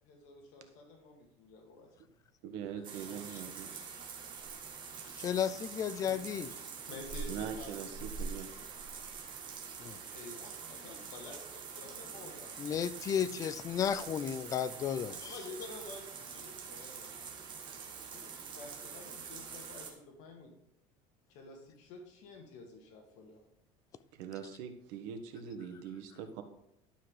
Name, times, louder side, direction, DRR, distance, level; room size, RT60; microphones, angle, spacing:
voice 1, 0.0-2.1 2.9-3.8 5.0-5.4 6.1-6.5 6.9-8.0 9.8-12.6 15.2-17.2 18.1-20.5 21.3-23.4, left 3 dB, 65° left, 2.1 m, -51 dB
voice 2, 2.4-3.7 4.9-5.2 7.3-8.5 24.1-26.4, right 8 dB, 85° right, 1.5 m, -42 dB
sound 1, 2.8-19.9, right 5 dB, 35° right, 1.7 m, -45 dB
voice 3, 5.2-6.5 9.8-10.0 12.6-15.4, left 8 dB, 25° left, 0.4 m, -33 dB
11.5 x 5.9 x 4.9 m
cardioid pair, 165°, 13 cm